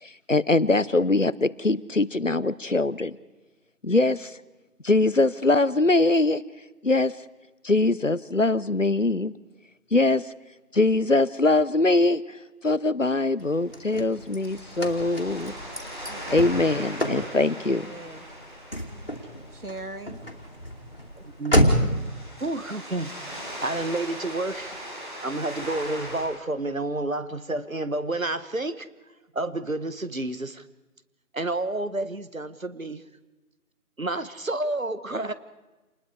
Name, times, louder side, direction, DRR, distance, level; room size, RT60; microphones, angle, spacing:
voice 1, 0.0-3.2 3.8-4.3 4.8-6.4 6.8-7.1 7.6-9.3 9.9-10.3 10.7-12.2 12.6-15.5 16.3-17.9, left 2 dB, 60° left, 18 dB, 0.8 m, -22 dB
Car / Slam, 13.4-22.1, equal, 40° left, 2.5 m, -29 dB
sound 1, 13.5-26.2, equal, 35° right, 6.7 m, -40 dB
voice 2, 17.4-18.3 19.5-20.2, right 2 dB, 80° right, 9 dB, 2.2 m, -40 dB
voice 3, 21.4-21.7 22.4-24.8 25.2-28.9 29.3-30.6 31.3-33.0 34.0-35.3, right 2 dB, 65° right, 12 dB, 1.5 m, -30 dB
28.5 x 20.5 x 4.8 m, 1.1 s
figure-of-eight pair, 180°, 44 cm